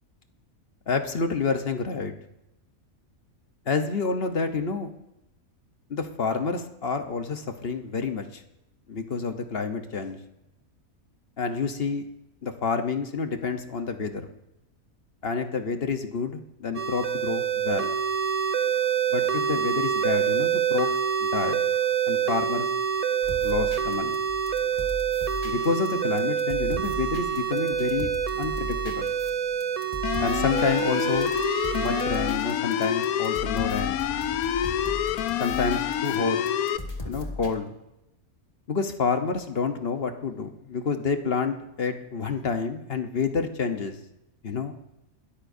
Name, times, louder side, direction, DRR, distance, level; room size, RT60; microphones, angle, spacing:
voice 1, 0.9-2.1 3.7-4.9 5.9-8.4 8.9-10.2 11.4-12.1 12.4-14.3 15.2-17.9 19.1-20.9 21.2-21.6 22.1-22.7 23.4-24.2 25.4-28.1 28.4-29.1 30.2-31.3 31.7-34.0 35.4-36.4 37.0-37.7 38.7-44.0 44.4-44.7, left 5 dB, 45° left, 7 dB, 1.1 m, -28 dB
sound 1, 16.7-32.3, right 8 dB, 40° right, 0.5 m, -27 dB
Alien Dream, 23.2-37.5, left 1 dB, 25° left, 1.8 m, -38 dB
sound 2, 30.0-36.8, left 10 dB, 85° left, 1.1 m, -27 dB
20.5 x 13.5 x 2.7 m, 0.90 s
omnidirectional pair, 1.5 m